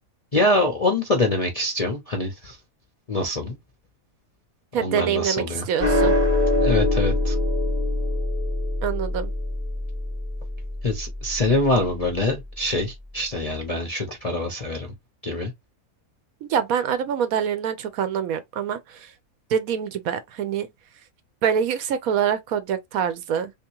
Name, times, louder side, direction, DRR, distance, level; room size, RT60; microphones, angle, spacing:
voice 1, 0.3-2.6 3.1-3.6 4.8-5.6 6.6-7.4 10.8-14.9 15.2-15.5, left 2 dB, 40° left, 0.5 m, -24 dB
voice 2, 4.7-6.1 8.8-9.3 16.4-19.1 19.5-20.7 21.4-23.5, right 8 dB, 70° right, 1.0 m, -25 dB
sound 1, 5.8-12.3, left 1 dB, 30° right, 1.0 m, -24 dB
3.5 x 2.9 x 2.9 m
omnidirectional pair, 1.6 m